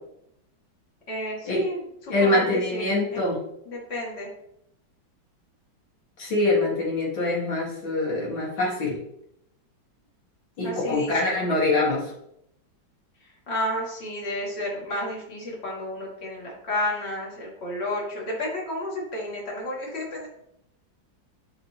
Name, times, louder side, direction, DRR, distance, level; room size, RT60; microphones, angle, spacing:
voice 1, 1.1-3.3 3.7-4.3 10.6-11.5 13.5-20.3, left 1 dB, 30° left, -4 dB, 2.3 m, -31 dB
voice 2, 2.1-3.4 6.2-9.0 10.6-12.1, left 2 dB, 70° left, -5 dB, 2.7 m, -24 dB
11.5 x 4.5 x 2.9 m, 0.77 s
omnidirectional pair, 2.2 m